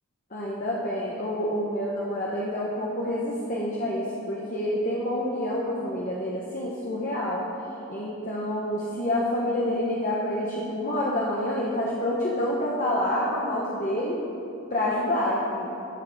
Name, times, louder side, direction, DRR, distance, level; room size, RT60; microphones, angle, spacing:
voice 1, 0.3-7.4 7.9-14.2 14.7-15.7, left 1 dB, 35° left, -5 dB, 1.3 m, -28 dB
14.0 x 5.7 x 7.9 m, 2.9 s
head